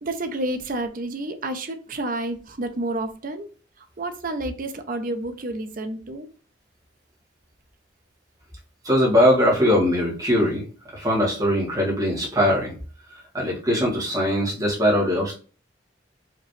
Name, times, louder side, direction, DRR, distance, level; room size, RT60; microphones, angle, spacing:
voice 1, 0.0-3.5 3.8-6.3, right 2 dB, 50° right, 7 dB, 0.7 m, -30 dB
voice 2, 8.8-10.6 10.9-12.7 13.1-15.3, equal, 20° right, -4 dB, 1.8 m, -21 dB
5.0 x 3.1 x 3.2 m, 0.38 s
head